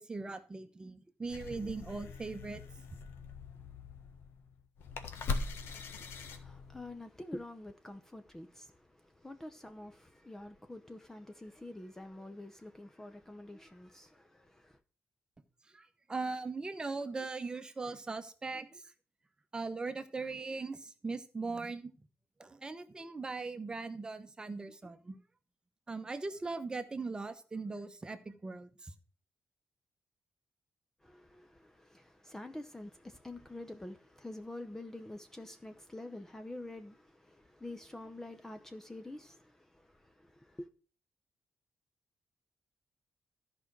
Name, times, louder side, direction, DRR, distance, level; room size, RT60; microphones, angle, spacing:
voice 1, 0.0-2.6 15.7-18.8 19.5-20.8 21.0-21.9 22.4-25.2 25.9-28.9, right 3 dB, 20° right, 1.0 m, -39 dB
sound 1, 1.3-7.0, left 4 dB, 85° left, 1.4 m, -41 dB
voice 2, 5.4-14.8 31.0-40.7, left 1 dB, 10° left, 0.7 m, -47 dB
13.5 x 5.2 x 6.1 m
wide cardioid pair, 150°, 4 cm